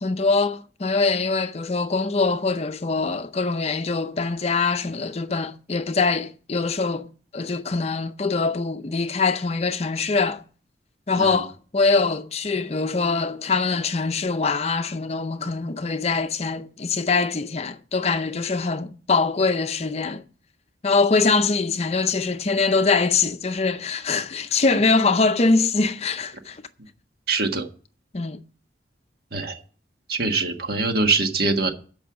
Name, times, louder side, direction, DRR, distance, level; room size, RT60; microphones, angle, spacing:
voice 1, 0.0-10.4 11.1-20.2 20.8-26.6 28.1-28.4, left 4 dB, 35° left, 0.5 m, -23 dB
voice 2, 27.3-27.7 29.3-29.6 30.1-31.7, right 3 dB, 60° right, 1.5 m, -23 dB
14.5 x 5.5 x 6.1 m
head